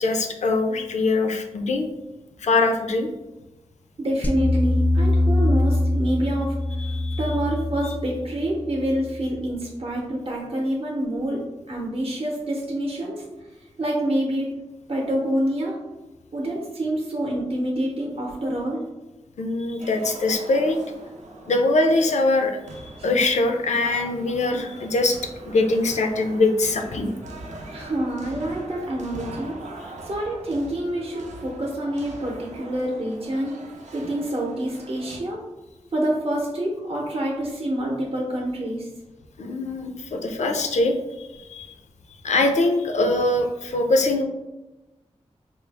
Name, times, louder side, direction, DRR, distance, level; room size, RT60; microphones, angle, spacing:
voice 1, 0.0-1.9 2.4-3.1 6.8-7.2 19.4-20.8 21.5-27.1 39.4-41.7 42.2-44.2, left 2 dB, 75° left, 4 dB, 0.5 m, -23 dB
voice 2, 4.0-11.4 11.7-13.2 13.8-14.5 14.9-15.8 16.3-18.8 23.0-23.1 27.7-29.6 30.1-33.5 33.9-35.4 35.9-38.9, right 1 dB, 55° right, -2 dB, 0.7 m, -27 dB
sound 1, 4.2-9.5, left 1 dB, 15° left, 0.4 m, -23 dB
sound 2, 19.8-35.2, right 2 dB, 90° right, 0.6 m, -42 dB
4.5 x 2.0 x 3.3 m, 1.0 s
wide cardioid pair, 115°, 12 cm